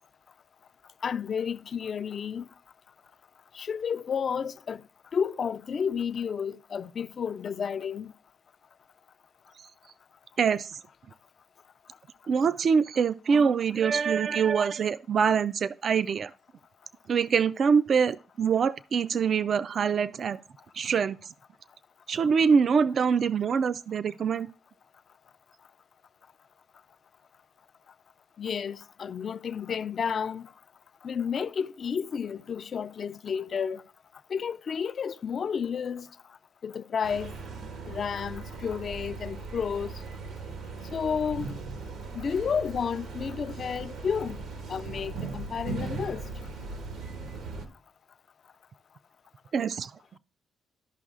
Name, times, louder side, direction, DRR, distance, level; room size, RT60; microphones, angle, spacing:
voice 1, 1.0-2.5 3.5-4.8 5.1-8.1 28.4-30.5 31.0-33.8 34.3-36.1 36.6-37.3 37.9-39.9 40.9-41.5 42.1-44.4 44.7-46.2, left 7 dB, 50° left, 0.4 m, -31 dB
voice 2, 10.4-10.8 12.3-16.3 17.1-20.4 20.7-21.2 22.1-24.5 49.5-49.9, right 6 dB, 50° right, 0.3 m, -24 dB
sound 1, 37.0-47.7, right 4 dB, 80° right, 1.3 m, -38 dB
13.0 x 5.4 x 2.4 m
cardioid pair, 90°, 0 cm